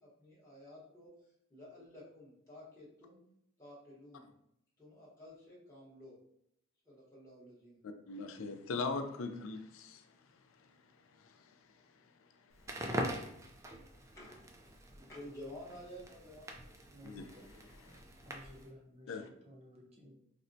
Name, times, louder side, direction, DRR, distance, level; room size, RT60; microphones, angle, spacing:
voice 1, 0.0-3.2 3.6-4.3 4.8-6.1 6.8-7.8 14.2-14.4 15.0-16.7, left 1 dB, 15° left, -8 dB, 1.0 m, -52 dB
voice 2, 7.8-12.3 17.0-17.3 17.9-18.0 19.1-19.3, left 3 dB, 65° left, 6 dB, 0.4 m, -42 dB
Crackle, 12.5-18.7, right 1 dB, 15° right, 0.3 m, -43 dB
voice 3, 16.9-18.0 18.2-20.1, equal, 30° right, -1 dB, 0.8 m, -56 dB
4.1 x 2.1 x 2.6 m, 0.77 s
head